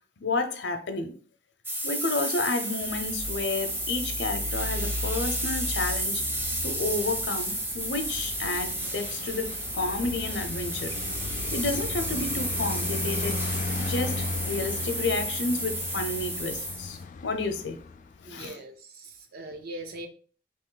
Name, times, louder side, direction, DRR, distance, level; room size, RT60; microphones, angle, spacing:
voice 1, 0.2-1.1 1.8-6.2 6.6-9.5 9.7-11.0 11.5-13.4 13.8-17.0 17.2-17.8 18.2-18.5, left 3 dB, 85° left, 0.6 m, -31 dB
sound 1, 1.6-17.0, right 1 dB, 15° right, 0.6 m, -32 dB
Traffic noise roadway noise, 2.8-18.3, left 3 dB, 45° left, 0.3 m, -36 dB
voice 2, 18.3-20.1, right 1 dB, 60° right, 0.6 m, -41 dB
3.0 x 3.0 x 3.8 m
head